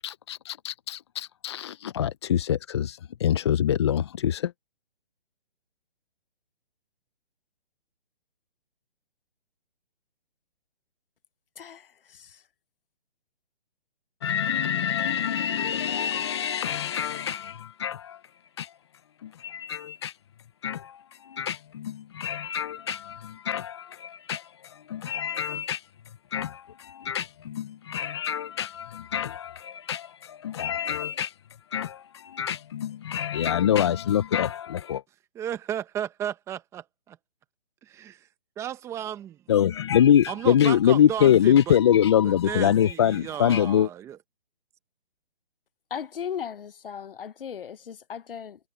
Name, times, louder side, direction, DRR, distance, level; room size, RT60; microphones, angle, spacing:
voice 1, 0.0-4.5 14.2-18.2 18.6-18.7 19.2-20.2 20.6-25.9 26.3-31.3 31.7-35.0 39.5-43.9, left 9 dB, 30° left, 0.5 m, -25 dB
voice 2, 35.3-37.2 37.8-38.3 38.6-39.3 40.3-41.8 42.2-44.2, right 10 dB, 10° right, 0.9 m, -34 dB
voice 3, 45.9-48.6, left 8 dB, 65° left, 1.1 m, -36 dB
hypercardioid pair, 155°, 30 cm